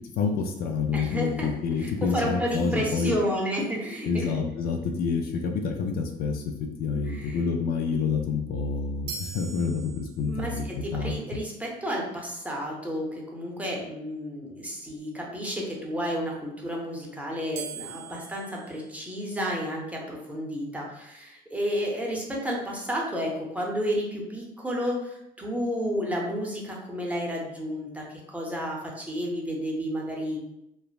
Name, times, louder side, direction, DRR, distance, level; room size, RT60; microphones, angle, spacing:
voice 1, 0.2-3.1 4.1-6.4 6.8-11.1, left 5 dB, 65° left, 4 dB, 0.4 m, -28 dB
voice 2, 0.9-1.5 1.8-4.3 7.1-7.4 10.3-30.4, equal, 10° right, -2 dB, 0.6 m, -31 dB
sound 1, 2.5-3.8 9.1-10.6 17.5-19.7, right 6 dB, 75° right, 0.4 m, -43 dB
3.2 x 2.0 x 2.3 m, 0.83 s
cardioid pair, 110°, 17 cm